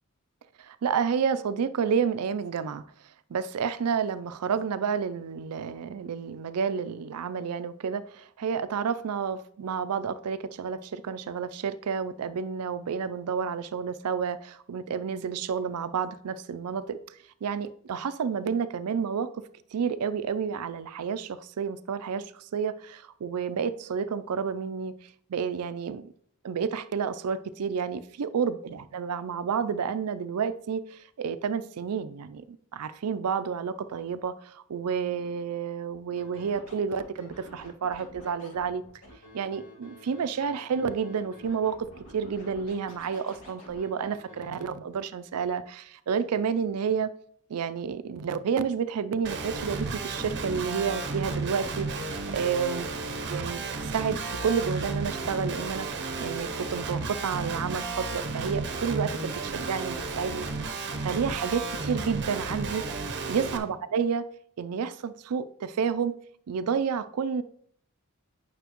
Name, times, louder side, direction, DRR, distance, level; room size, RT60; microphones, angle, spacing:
voice 1, 0.6-2.8 3.3-17.0 17.4-19.4 19.7-25.0 25.3-26.1 26.4-38.8 39.3-47.1 47.5-52.9 53.3-55.9 56.2-60.5 61.0-62.9 63.3-64.3 64.6-66.2 66.5-67.4, right 6 dB, 85° right, 0.4 m, -30 dB
Scratching (performance technique), 36.2-44.7, left 1 dB, 65° left, 2.7 m, -50 dB
Guitar, 49.2-63.6, right 3 dB, 55° right, 0.8 m, -33 dB
9.1 x 5.9 x 3.0 m
head